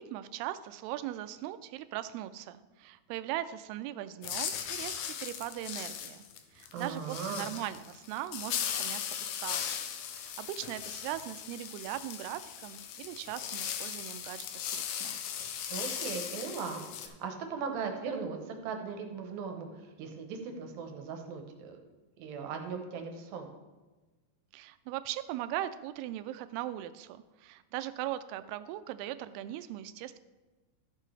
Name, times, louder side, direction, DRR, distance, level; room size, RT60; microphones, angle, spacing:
voice 1, 0.0-6.3 6.5-9.8 10.2-15.2 24.5-30.2, right 13 dB, 90° right, 12 dB, 2.6 m, -39 dB
sound 1, 4.2-17.1, left 8 dB, 80° left, 2.7 m, -38 dB
voice 2, 6.7-7.5 15.7-19.7 20.0-21.8 22.2-23.5, right 5 dB, 75° right, 4 dB, 2.6 m, -38 dB
13.5 x 7.5 x 3.3 m, 1.2 s
omnidirectional pair, 4.5 m